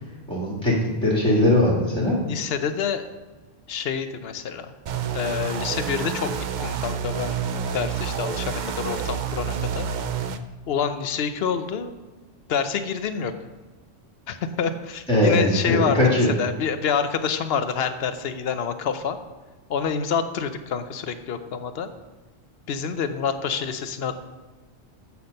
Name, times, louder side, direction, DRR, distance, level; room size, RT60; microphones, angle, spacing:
voice 1, 0.3-2.1 15.1-16.3, left 1 dB, 5° left, -4 dB, 1.8 m, -20 dB
voice 2, 2.3-3.0 3.7-4.7 5.1-6.3 6.6-7.4 7.7-9.9 10.7-11.9 12.5-13.3 14.3-19.2 19.7-21.9 22.7-24.2, left 6 dB, 60° left, 9 dB, 0.8 m, -27 dB
sound 1, 4.9-10.4, right 7 dB, 60° right, 0.5 m, -29 dB
8.2 x 5.8 x 5.2 m, 1.2 s
omnidirectional pair, 1.2 m